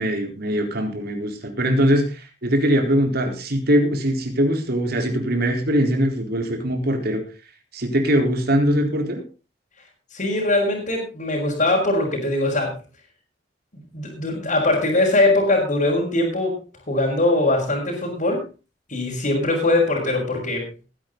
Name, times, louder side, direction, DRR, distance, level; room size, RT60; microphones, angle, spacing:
voice 1, 0.0-7.2 7.7-9.2, equal, 55° right, 4 dB, 4.2 m, -21 dB
voice 2, 10.1-12.8 13.9-16.6 16.9-18.5 18.9-20.7, left 2 dB, 45° left, -5 dB, 5.4 m, -21 dB
19.5 x 10.5 x 4.0 m, 0.32 s
head